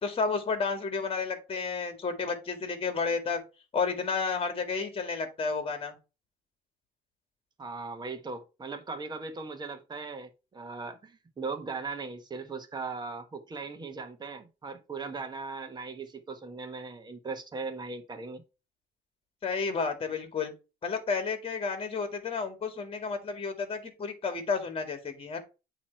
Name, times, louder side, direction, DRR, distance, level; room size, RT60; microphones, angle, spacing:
voice 1, 0.0-3.4 3.7-6.0 19.4-20.5 20.8-25.4, left 5 dB, 35° left, 1.9 m, -31 dB
voice 2, 7.6-18.4, right 4 dB, 25° right, 1.3 m, -39 dB
8.4 x 3.2 x 4.4 m
cardioid pair, 110°, 17 cm